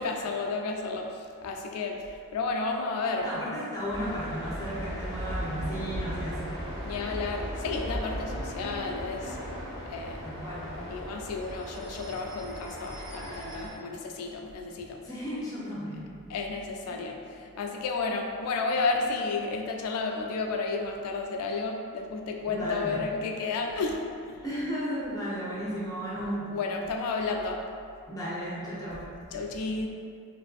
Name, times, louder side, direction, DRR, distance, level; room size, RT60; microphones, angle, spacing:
voice 1, 0.0-3.3 6.8-9.4 9.9-10.2 10.9-15.0 16.3-24.4 26.1-27.6 28.9-29.9, left 3 dB, 90° left, 2 dB, 0.3 m, -32 dB
voice 2, 3.2-6.6 10.2-10.6 15.0-16.1 16.9-17.0 22.5-23.0 24.4-26.5 28.1-29.0, equal, 15° left, -8 dB, 0.5 m, -34 dB
sound 1, 3.9-13.7, equal, 20° right, 1.1 m, -37 dB
2.5 x 2.5 x 2.3 m, 2.3 s
head